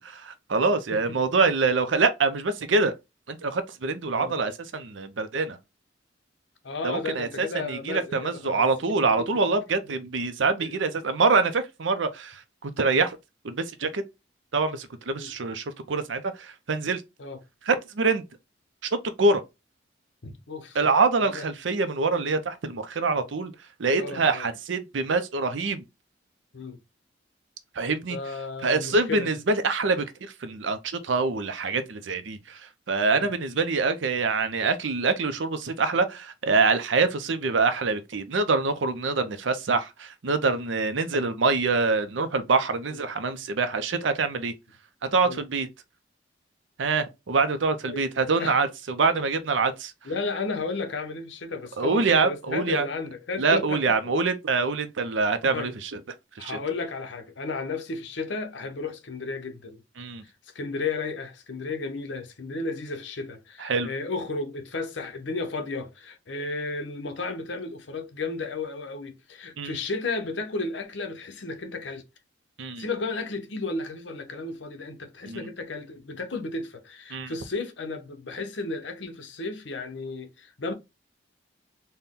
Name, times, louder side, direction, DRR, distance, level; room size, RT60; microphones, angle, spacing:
voice 1, 0.3-2.9 3.3-5.6 6.8-13.2 13.4-14.0 14.5-17.0 17.7-18.2 18.8-19.4 20.7-23.5 23.8-25.8 27.8-28.2 28.6-32.6 32.9-44.5 45.0-45.7 46.8-49.9 51.8-52.9 53.4-56.0 56.4-56.6 60.0-60.2 63.6-63.9 69.6-69.8 72.6-72.8 75.3-75.5 77.1-77.3, right 4 dB, 80° right, 0.6 m, -25 dB
voice 2, 6.6-8.7 9.2-9.3 9.9-10.0 10.6-10.7 15.2-15.3 17.2-17.4 20.2-20.8 21.2-21.5 24.0-24.5 26.5-26.8 28.1-29.3 33.1-33.3 42.9-43.0 45.2-45.4 47.9-48.1 48.4-48.6 50.0-54.0 55.5-55.7 56.4-59.8 60.5-72.0 72.8-80.7, left 3 dB, 75° left, 0.8 m, -33 dB
4.2 x 2.2 x 3.6 m
head